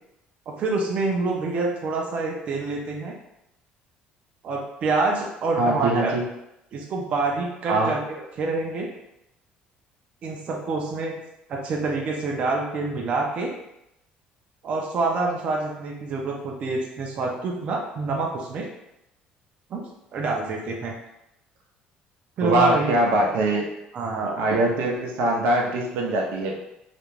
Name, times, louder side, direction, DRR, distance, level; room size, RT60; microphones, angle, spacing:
voice 1, 0.5-3.2 4.4-6.2 6.7-8.0 8.4-8.9 10.2-11.1 11.5-13.5 14.6-18.7 19.7-19.8 20.1-21.0 22.4-23.0 23.9-24.4, right 3 dB, 40° right, 0 dB, 0.4 m, -26 dB
voice 2, 5.6-6.2 7.7-7.9 22.4-23.7 24.4-26.6, right 1 dB, 90° right, -1 dB, 0.5 m, -22 dB
2.4 x 2.1 x 3.0 m, 0.84 s
cardioid pair, 165°, 3 cm